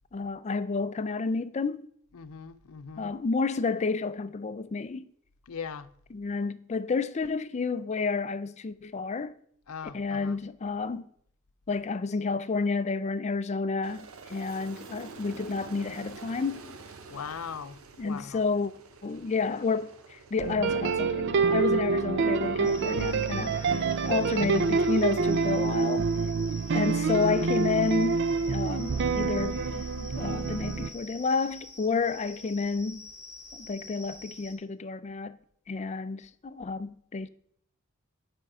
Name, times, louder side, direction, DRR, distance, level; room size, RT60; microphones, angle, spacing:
voice 1, 0.1-1.8 3.0-5.1 6.1-9.3 9.9-11.1 11.7-16.8 18.0-18.7 19.0-26.1 26.7-28.2 28.5-33.0 33.5-35.4 35.7-37.3, left 4 dB, 30° left, 0.4 m, -30 dB
voice 2, 2.1-3.1 5.5-5.9 9.7-10.4 17.1-18.4 23.4-23.7, left 6 dB, 75° left, 0.6 m, -40 dB
Aircraft, 13.8-20.5, right 4 dB, 70° right, 0.9 m, -47 dB
sound 1, 20.4-30.9, right 4 dB, 55° right, 0.5 m, -27 dB
sound 2, 22.6-34.5, left 2 dB, 5° right, 1.7 m, -47 dB
10.0 x 5.2 x 4.8 m
head